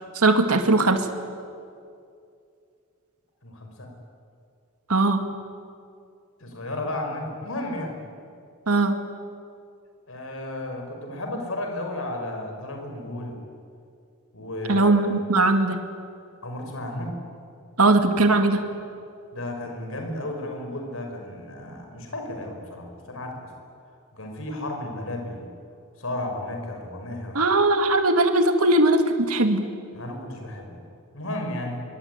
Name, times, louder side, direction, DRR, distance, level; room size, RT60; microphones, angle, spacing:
voice 1, 0.1-1.1 4.9-5.2 8.7-8.9 14.7-15.8 17.8-18.6 27.3-29.0 29.3-29.7, right 2 dB, 90° right, 6 dB, 2.2 m, -19 dB
voice 2, 3.4-3.9 6.4-8.0 10.1-13.4 14.3-15.1 16.4-17.2 19.3-23.5 24.1-25.5 26.0-27.4 29.9-30.8 31.1-31.8, left 1 dB, 65° left, 3 dB, 6.0 m, -33 dB
25.0 x 24.0 x 9.6 m, 2.4 s
head